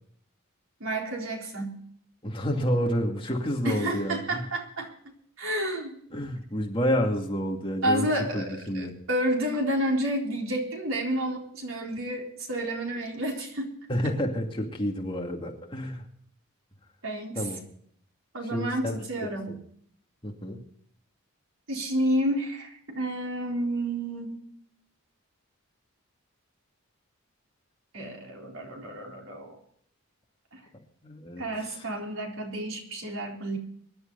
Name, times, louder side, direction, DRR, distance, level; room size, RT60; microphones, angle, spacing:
voice 1, 0.8-1.8 3.6-6.0 7.8-13.7 14.0-14.1 17.0-17.5 18.3-19.5 21.7-24.4 27.9-29.6 30.5-30.6 31.4-33.6, right 1 dB, 65° right, 1 dB, 4.1 m, -30 dB
voice 2, 2.2-4.4 6.1-8.1 8.3-8.9 13.9-16.0 17.3-17.6 18.5-19.0 19.5-19.6 20.2-20.6 31.0-31.9, equal, 25° left, 1 dB, 2.4 m, -29 dB
23.5 x 11.5 x 4.1 m, 0.63 s
head